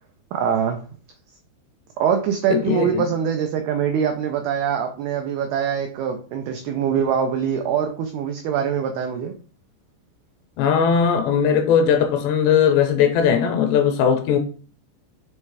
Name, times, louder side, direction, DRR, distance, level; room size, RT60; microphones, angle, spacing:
voice 1, 0.3-0.8 2.0-9.3, right 7 dB, 90° right, 2.2 m, -23 dB
voice 2, 2.5-3.1 10.6-14.4, left 7 dB, 80° left, 2.7 m, -19 dB
7.1 x 3.3 x 4.7 m
omnidirectional pair, 5.4 m